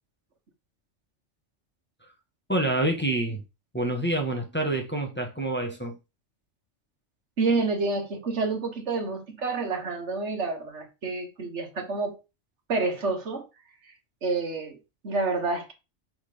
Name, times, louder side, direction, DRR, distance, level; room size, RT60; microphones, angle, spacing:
voice 1, 2.5-3.4 3.7-6.0, right 1 dB, 10° left, 1.2 m, -27 dB
voice 2, 7.4-12.2 12.7-13.5 14.2-14.8 15.0-15.7, right 3 dB, 75° right, 1.7 m, -28 dB
6.1 x 4.0 x 5.0 m
omnidirectional pair, 1.2 m